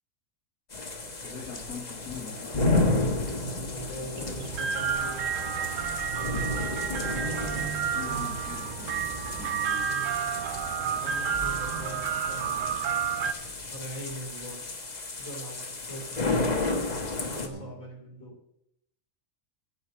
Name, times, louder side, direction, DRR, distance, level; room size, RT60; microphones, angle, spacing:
sound 1, 0.7-17.5, left 2 dB, 35° left, 1.3 m, -32 dB
voice 1, 1.2-2.9 6.9-9.9 17.4-17.8, left 3 dB, 70° left, -2 dB, 2.5 m, -44 dB
voice 2, 3.6-5.3 10.9-12.7 13.7-14.6 15.2-16.6 17.4-18.4, right 1 dB, 90° left, -1 dB, 3.5 m, -41 dB
sound 2, 4.2-13.3, right 8 dB, 75° right, 1.0 m, -31 dB
15.0 x 5.4 x 7.6 m, 0.78 s
omnidirectional pair, 1.4 m